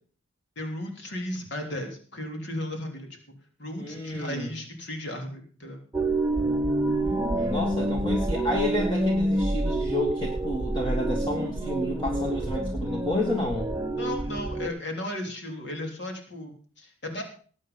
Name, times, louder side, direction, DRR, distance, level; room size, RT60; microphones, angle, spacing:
voice 1, 0.6-3.1 3.6-5.8 14.0-17.2, left 1 dB, 55° left, 3 dB, 3.3 m, -35 dB
voice 2, 3.8-4.5 7.0-13.7, left 1 dB, 20° left, 1 dB, 1.8 m, -30 dB
sound 1, 5.9-14.7, right 1 dB, 10° right, 0.8 m, -27 dB
19.0 x 8.5 x 5.3 m, 0.43 s
head